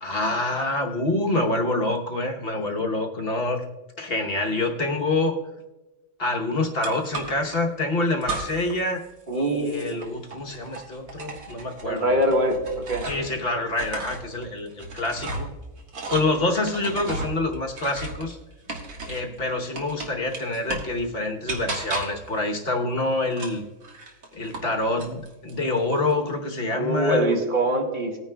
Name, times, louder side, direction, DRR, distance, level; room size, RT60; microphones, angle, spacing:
voice 1, 0.0-3.6 4.0-5.4 6.2-9.1 9.3-12.0 13.0-15.5 16.1-18.4 19.0-23.7 24.3-27.3, left 2 dB, 45° left, 2 dB, 1.1 m, -26 dB
sound 1, 6.8-7.6 8.2-8.8 9.1-13.4 13.7-19.3 19.7-21.0 21.5-22.3 23.3-24.7 25.0-25.6, right 2 dB, 70° right, 1.9 m, -35 dB
voice 2, 9.3-10.0 11.8-13.1 26.7-28.2, right 1 dB, 35° right, 1 dB, 1.7 m, -23 dB
19.5 x 9.5 x 2.2 m, 1.1 s
omnidirectional pair, 1.5 m